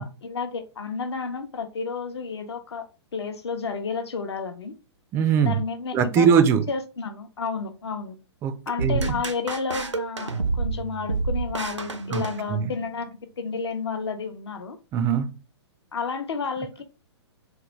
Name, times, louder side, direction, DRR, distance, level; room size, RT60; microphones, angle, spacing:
voice 1, 0.0-4.7 5.4-6.3 6.7-8.2 8.7-14.8 15.9-16.8, left 5 dB, 65° left, 0.7 m, -31 dB
voice 2, 5.1-5.6 5.9-6.7 8.4-8.5 8.8-9.2 12.1-12.2 12.5-12.7 14.9-15.3, right 7 dB, 15° right, 0.3 m, -21 dB
sound 1, 8.8-12.9, right 4 dB, 85° right, 0.6 m, -29 dB
3.8 x 2.2 x 3.0 m
figure-of-eight pair, 115°, 15 cm